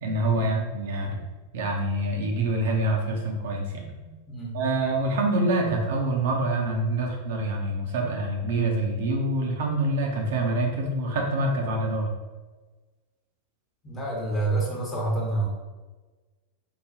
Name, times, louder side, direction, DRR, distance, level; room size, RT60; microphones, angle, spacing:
voice 1, 0.0-1.2 1.5-3.9 4.5-12.1, right 2 dB, 55° right, 1 dB, 0.6 m, -26 dB
voice 2, 4.0-4.5 13.8-15.5, right 2 dB, 20° left, -3 dB, 1.1 m, -28 dB
4.8 x 2.2 x 2.6 m, 1.3 s
figure-of-eight pair, 90°, 0 cm